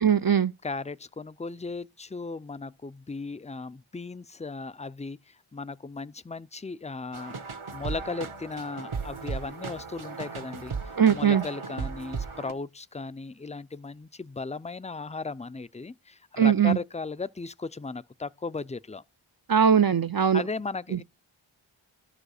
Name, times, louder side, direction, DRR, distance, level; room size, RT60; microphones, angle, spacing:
voice 1, 0.0-0.5 11.0-11.4 16.4-16.8 19.5-20.4 20.9-21.0, right 8 dB, 45° right, 0.5 m, -20 dB
voice 2, 0.6-7.4 7.7-19.0 20.3-21.0, left 4 dB, 15° left, 0.5 m, -36 dB
sound 1, 7.1-12.5, right 5 dB, 75° right, 1.4 m, -36 dB
12.5 x 5.0 x 6.5 m
wide cardioid pair, 45°, 49 cm